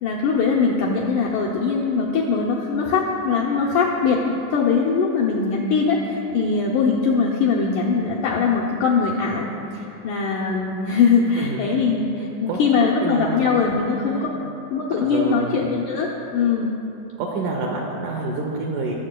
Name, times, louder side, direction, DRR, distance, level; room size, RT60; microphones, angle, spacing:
voice 1, 0.0-14.3 14.7-16.7, left 5 dB, 80° left, -3 dB, 1.8 m, -21 dB
voice 2, 13.0-14.3 15.0-15.6 17.2-18.9, right 3 dB, 80° right, -1 dB, 1.8 m, -28 dB
20.0 x 7.5 x 2.2 m, 2.9 s
omnidirectional pair, 4.3 m